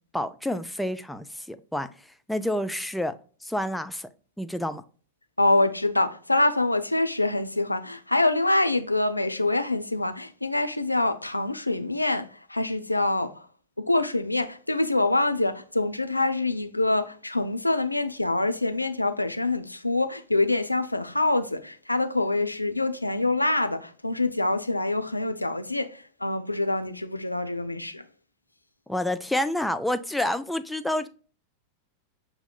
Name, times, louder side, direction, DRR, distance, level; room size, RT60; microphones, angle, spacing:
voice 1, 0.1-3.1 3.4-4.1 4.4-4.8 28.9-31.1, left 1 dB, 5° left, 0.4 m, -29 dB
voice 2, 5.4-13.4 13.8-28.1, left 2 dB, 85° left, 0.4 m, -25 dB
6.8 x 2.8 x 2.3 m
figure-of-eight pair, 90°, 0 cm